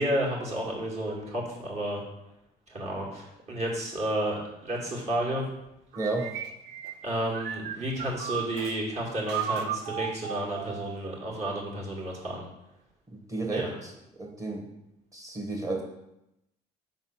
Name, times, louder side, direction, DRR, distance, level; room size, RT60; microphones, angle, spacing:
voice 1, 0.0-2.0 2.7-5.4 7.0-12.5 13.5-13.7, right 1 dB, 40° right, -3 dB, 2.3 m, -31 dB
voice 2, 5.9-6.3 13.1-13.9 14.2-14.7 15.1-15.8, right 2 dB, 20° right, 1 dB, 1.6 m, -32 dB
sound 1, 5.9-8.8 9.3-11.1, right 8 dB, 90° right, 0.5 m, -35 dB
5.5 x 4.0 x 6.0 m, 0.87 s
cardioid pair, 110°, 17 cm